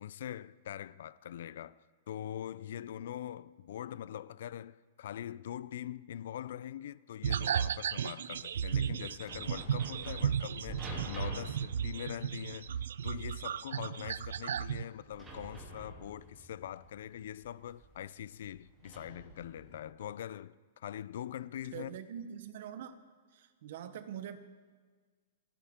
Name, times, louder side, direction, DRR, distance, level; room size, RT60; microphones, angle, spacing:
voice 1, 0.0-22.0, left 10 dB, 60° left, 0.4 m, -43 dB
sound 1, 7.2-14.8, right 8 dB, 85° right, 0.4 m, -34 dB
sound 2, 8.1-19.8, right 2 dB, 10° right, 2.8 m, -49 dB
voice 2, 21.7-23.0 23.3-24.4, right 9 dB, 50° right, 0.9 m, -44 dB
29.5 x 10.0 x 3.6 m
hypercardioid pair, 170°, 0 cm